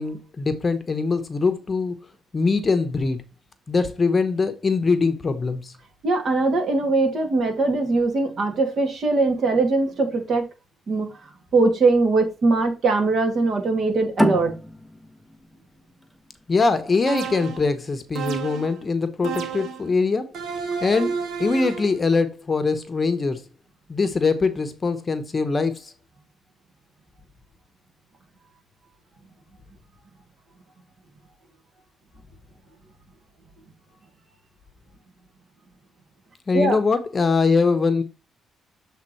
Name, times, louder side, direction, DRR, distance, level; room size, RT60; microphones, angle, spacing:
voice 1, 0.0-2.0 2.3-3.2 3.7-5.7 16.5-20.3 20.8-23.4 23.9-25.9 36.5-38.0, left 4 dB, 30° left, 0.9 m, -22 dB
voice 2, 6.0-10.4 10.9-11.2 11.5-14.6 36.5-36.8, right 3 dB, 55° right, 2.3 m, -21 dB
sound 1, 14.2-17.4, left 1 dB, ahead, 0.6 m, -28 dB
sound 2, 17.1-17.7 18.1-18.8 19.2-19.9 20.3-21.9, right 6 dB, 75° right, 1.6 m, -30 dB
7.4 x 3.7 x 4.3 m
cardioid pair, 90°, 0 cm